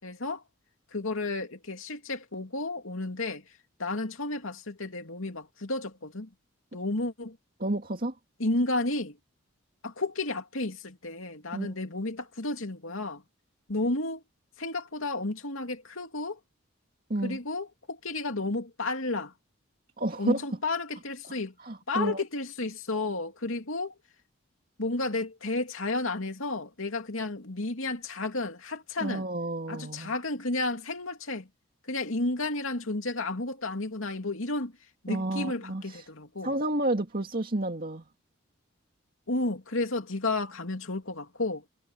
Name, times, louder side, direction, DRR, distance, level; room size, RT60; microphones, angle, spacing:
voice 1, 0.0-0.4 0.9-3.4 3.8-6.3 6.7-7.4 8.4-9.2 9.8-13.2 13.7-14.2 14.6-16.4 17.2-19.3 20.2-21.5 21.9-23.9 24.8-29.2 29.7-31.5 31.9-34.7 35.0-36.5 39.3-41.6, left 2 dB, 75° left, 2.6 m, -32 dB
voice 2, 7.6-8.2 11.5-11.7 17.1-17.4 20.0-20.4 21.2-22.2 29.0-30.1 35.1-36.1 36.4-38.0, right 1 dB, 45° right, 2.3 m, -31 dB
head